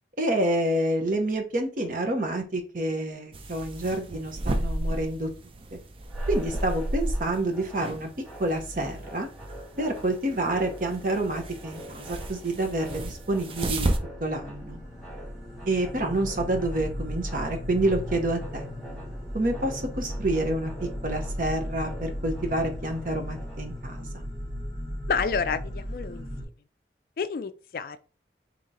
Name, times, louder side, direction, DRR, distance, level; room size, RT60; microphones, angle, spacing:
voice 1, 0.2-5.3 6.3-8.1 8.4-9.3 9.8-13.9 14.2-14.8 15.6-18.7 19.3-20.7 21.0-24.2, right 1 dB, 45° right, 0.9 m, -28 dB
sound 1, 3.3-14.0, right 1 dB, 30° right, 0.4 m, -33 dB
sound 2, 6.0-23.9, equal, ahead, 2.3 m, -46 dB
sound 3, 13.1-26.4, equal, 25° left, 1.9 m, -36 dB
voice 2, 25.1-26.2 27.2-28.0, left 5 dB, 55° left, 0.3 m, -29 dB
3.8 x 2.9 x 4.0 m
head